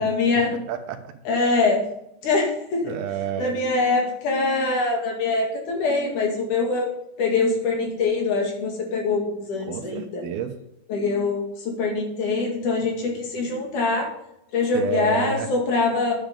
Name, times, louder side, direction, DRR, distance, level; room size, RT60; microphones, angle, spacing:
voice 1, 0.0-0.5 1.3-1.8 2.2-3.0 3.4-6.9 7.2-10.2 10.9-14.1 14.5-16.1, left 3 dB, 60° left, 1 dB, 3.4 m, -23 dB
voice 2, 0.7-1.1 2.8-3.5 9.6-10.6 14.7-15.5, right 7 dB, 80° right, 7 dB, 3.0 m, -29 dB
9.9 x 9.6 x 5.2 m, 0.80 s
omnidirectional pair, 4.4 m